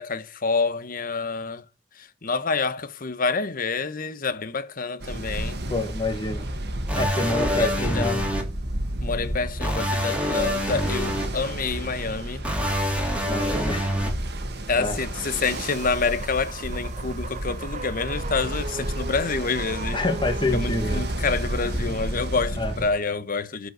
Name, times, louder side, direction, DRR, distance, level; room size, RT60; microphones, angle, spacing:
voice 1, 0.0-1.6 2.0-5.6 7.5-8.1 9.0-12.4 14.7-20.0 20.5-23.7, left 4 dB, 50° left, 1.0 m, -28 dB
Ocean, 5.0-22.9, right 1 dB, 60° right, 1.6 m, -31 dB
voice 2, 5.7-6.4 7.0-8.2 13.3-13.9 14.8-15.0 19.9-21.0 22.6-22.7, left 2 dB, 25° left, 1.9 m, -27 dB
sound 1, 6.9-8.4 9.6-11.3 12.4-14.1, equal, 5° right, 2.6 m, -26 dB
sound 2, 15.4-21.1, right 4 dB, 40° right, 0.9 m, -38 dB
11.0 x 5.1 x 6.3 m
head